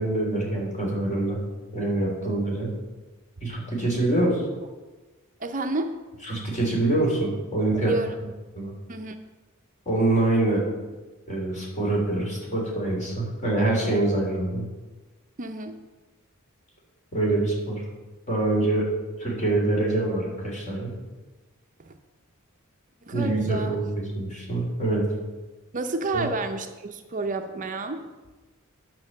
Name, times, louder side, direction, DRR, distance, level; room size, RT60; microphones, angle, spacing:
voice 1, 0.0-1.4 1.7-2.7 3.4-4.4 6.3-7.9 8.6-8.7 9.9-10.6 11.3-14.7 17.1-17.8 18.3-18.9 19.2-20.9 23.1-25.1 26.1-26.3, right 2 dB, 35° left, -2 dB, 3.5 m, -25 dB
voice 2, 5.4-5.9 7.8-8.1 8.9-9.2 15.4-15.8 21.8-22.0 23.0-23.8 25.7-28.1, right 2 dB, 40° right, 6 dB, 0.7 m, -30 dB
9.8 x 6.0 x 7.4 m, 1.2 s
head